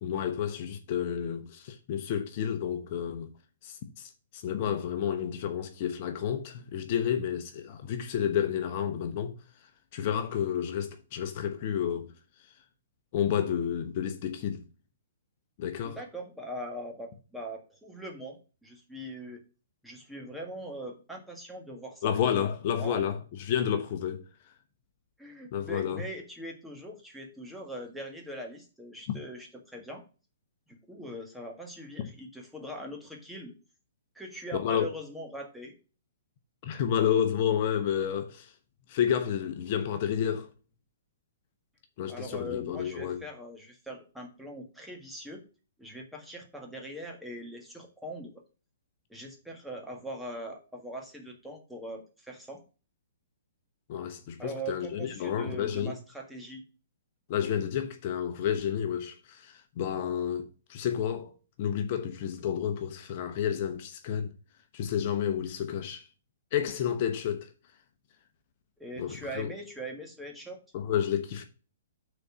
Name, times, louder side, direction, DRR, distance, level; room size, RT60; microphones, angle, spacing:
voice 1, 0.0-3.3 3.6-9.3 9.9-12.1 13.1-14.6 15.6-16.0 22.0-24.2 25.5-26.0 29.1-29.2 34.5-34.9 36.6-38.5 38.9-40.5 42.0-43.2 53.9-55.9 57.3-61.3 61.6-64.3 64.7-66.0 66.5-67.5 69.0-69.5 70.7-71.4, left 9 dB, 45° left, 1.0 m, -30 dB
voice 2, 15.8-19.4 19.8-22.2 22.8-23.0 25.2-30.0 30.7-33.5 34.1-35.7 42.1-45.4 45.8-48.3 49.1-52.6 54.4-56.6 68.8-70.6, right 1 dB, ahead, 1.7 m, -41 dB
6.4 x 4.2 x 6.1 m
hypercardioid pair, 140°, 0 cm